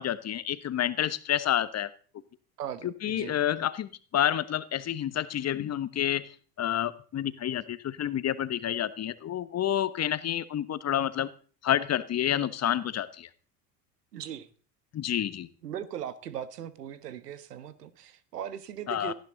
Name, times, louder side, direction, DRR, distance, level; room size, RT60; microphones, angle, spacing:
voice 1, 0.0-1.9 2.8-6.3 6.6-11.3 11.6-13.3 14.9-15.5 18.9-19.1, left 11 dB, 35° left, 14 dB, 1.2 m, -29 dB
voice 2, 2.6-3.4 14.1-14.5 15.6-19.1, right 9 dB, 80° right, 14 dB, 1.5 m, -39 dB
18.0 x 15.0 x 4.0 m, 0.41 s
figure-of-eight pair, 75°, 47 cm